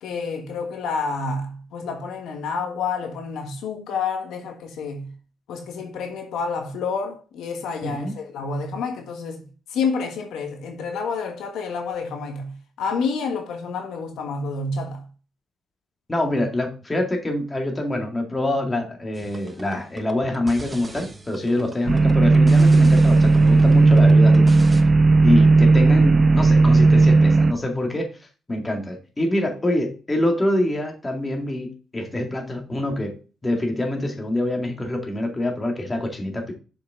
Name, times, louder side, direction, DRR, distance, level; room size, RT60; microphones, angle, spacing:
voice 1, 0.0-5.1 5.5-9.4 9.7-15.1, left 4 dB, 80° left, 1.3 m, -29 dB
voice 2, 7.8-8.1 16.1-24.9 25.2-28.1 28.5-33.2 33.4-36.5, left 1 dB, 20° left, 2.1 m, -25 dB
sound 1, 19.1-24.8, right 2 dB, 20° right, 1.1 m, -40 dB
sound 2, 21.9-27.5, right 3 dB, 35° right, 0.5 m, -14 dB
6.6 x 5.5 x 3.7 m
cardioid pair, 90°, 0 cm